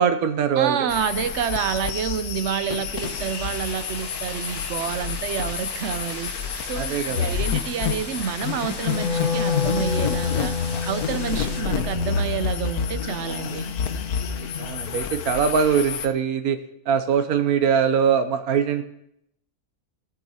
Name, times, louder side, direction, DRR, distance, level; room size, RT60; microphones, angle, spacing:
voice 1, 0.0-0.9 6.8-7.3 14.3-16.6 16.9-18.8, right 7 dB, 75° right, 9 dB, 1.2 m, -22 dB
voice 2, 0.6-6.4 6.7-10.5 10.8-13.7, right 8 dB, 60° right, 13 dB, 0.8 m, -28 dB
sound 1, 0.9-16.1, left 7 dB, 85° left, 1.4 m, -29 dB
sound 2, 3.0-11.6, left 1 dB, 15° left, 1.3 m, -39 dB
Wind instrument woodwind instrument, 8.8-15.0, left 5 dB, 70° left, 1.8 m, -30 dB
18.5 x 6.8 x 4.2 m, 0.76 s
omnidirectional pair, 1.6 m